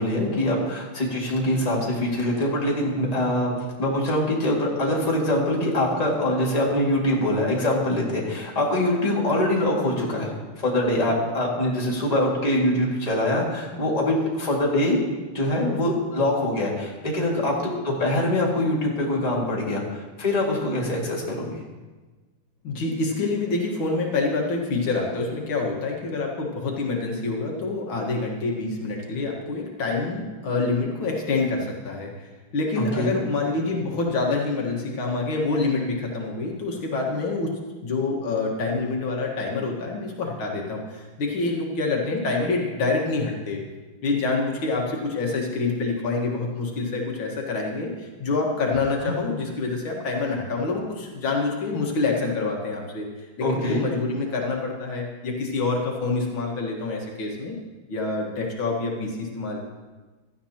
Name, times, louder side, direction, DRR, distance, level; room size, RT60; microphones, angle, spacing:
voice 1, 0.0-15.0 15.3-21.6 32.8-33.2 49.0-49.1 53.4-53.9, left 1 dB, 20° left, -3 dB, 2.1 m, -24 dB
voice 2, 22.6-43.6 44.0-53.1 53.4-57.6 57.9-59.7, left 3 dB, 75° left, -1 dB, 2.4 m, -27 dB
16.5 x 13.0 x 2.9 m, 1.3 s
omnidirectional pair, 2.3 m